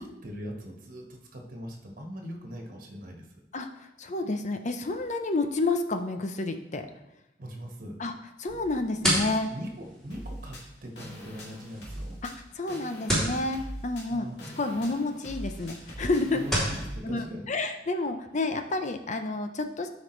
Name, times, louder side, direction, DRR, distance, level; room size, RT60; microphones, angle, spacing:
voice 1, 0.0-3.4 7.4-8.0 9.5-12.2 14.1-14.9 16.3-17.5, equal, 50° right, 1 dB, 1.5 m, -41 dB
voice 2, 3.5-6.9 8.0-8.1 8.4-9.5 12.2-12.3 12.6-16.4 17.0-19.9, left 2 dB, 45° left, 7 dB, 0.7 m, -30 dB
sound 1, 8.5-16.8, right 1 dB, 5° left, 3.1 m, -34 dB
sound 2, 10.1-17.0, equal, 70° left, 2.3 m, -42 dB
12.5 x 5.2 x 3.2 m, 0.93 s
head